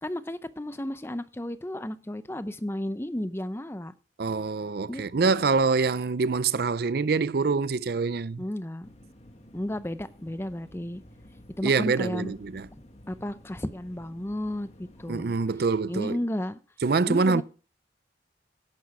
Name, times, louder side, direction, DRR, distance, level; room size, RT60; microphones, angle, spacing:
voice 1, 0.0-3.9 4.9-5.3 8.4-8.9 9.5-11.0 11.6-12.3 13.1-15.3 15.9-16.6 17.1-17.4, left 1 dB, 15° left, 0.6 m, -33 dB
voice 2, 4.2-8.4 11.6-12.7 15.1-16.2 16.8-17.4, right 4 dB, 60° right, 0.5 m, -25 dB
sound 1, 8.8-15.2, left 1 dB, 35° left, 1.4 m, -52 dB
11.0 x 10.5 x 4.7 m
head